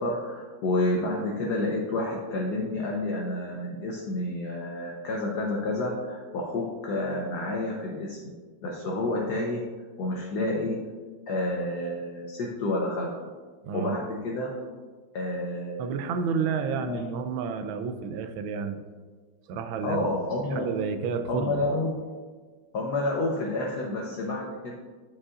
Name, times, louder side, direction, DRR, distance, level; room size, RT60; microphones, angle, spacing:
voice 1, 0.0-8.3 8.6-9.6 10.0-10.8 11.3-13.1 13.7-14.5 15.1-16.3 16.8-17.0 19.8-20.7 21.3-21.9 22.7-24.7, left 2 dB, 60° left, -2 dB, 1.2 m, -29 dB
voice 2, 13.6-14.0 15.8-18.8 19.5-20.2 20.5-21.5, right 6 dB, 75° right, 8 dB, 1.3 m, -30 dB
11.0 x 4.9 x 2.5 m, 1.5 s
omnidirectional pair, 2.3 m